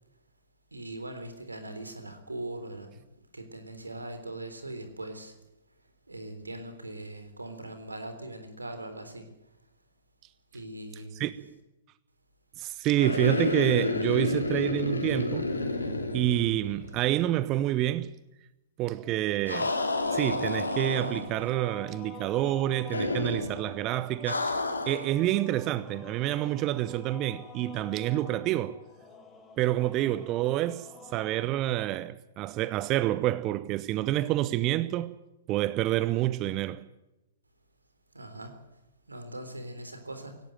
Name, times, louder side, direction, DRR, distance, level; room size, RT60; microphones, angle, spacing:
voice 1, 0.7-3.0 3.3-5.4 6.1-9.3 10.5-11.3 38.1-38.6 39.1-40.4, right 1 dB, 85° right, 3.7 m, -40 dB
voice 2, 12.6-15.5 16.1-18.1 18.8-19.7 20.1-24.5 24.9-28.8 29.6-35.1 35.5-36.8, right 14 dB, 30° right, 0.7 m, -28 dB
sound 1, 12.9-17.1 17.3-17.4 19.5-21.5 22.9-23.6 24.3-25.1, left 2 dB, 80° left, 3.0 m, -30 dB
sound 2, 18.9-31.5, left 4 dB, 15° left, 4.0 m, -48 dB
17.5 x 17.0 x 9.1 m
figure-of-eight pair, 115°, 0 cm